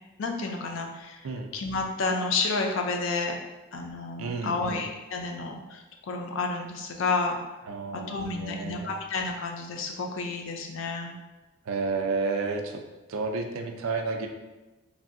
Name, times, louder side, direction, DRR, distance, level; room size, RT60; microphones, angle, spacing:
voice 1, 0.2-1.2 1.5-3.4 3.7-7.4 7.9-11.1, left 3 dB, 70° left, 2 dB, 0.4 m, -30 dB
voice 2, 4.2-4.9 7.7-8.9 11.7-12.8 13.1-14.3, right 4 dB, 85° right, 4 dB, 0.4 m, -31 dB
3.2 x 2.6 x 2.5 m, 1.1 s
head